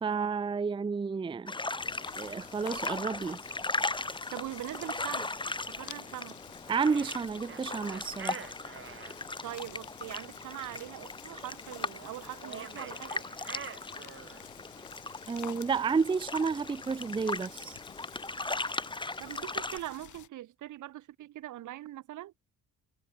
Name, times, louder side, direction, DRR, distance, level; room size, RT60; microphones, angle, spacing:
voice 1, 0.0-1.5 2.2-3.4 6.7-8.5 15.3-17.8, right 5 dB, 15° right, 0.5 m, -31 dB
sound 1, 1.5-19.8, left 3 dB, 15° left, 2.0 m, -38 dB
sound 2, 1.8-20.3, left 12 dB, 75° left, 4.9 m, -51 dB
voice 2, 4.3-5.3 5.7-6.4 9.4-13.2 19.2-22.3, right 14 dB, 80° right, 2.2 m, -42 dB
sound 3, 6.7-9.2 12.4-14.5, right 7 dB, 45° right, 2.0 m, -45 dB
cardioid pair, 90°, 30 cm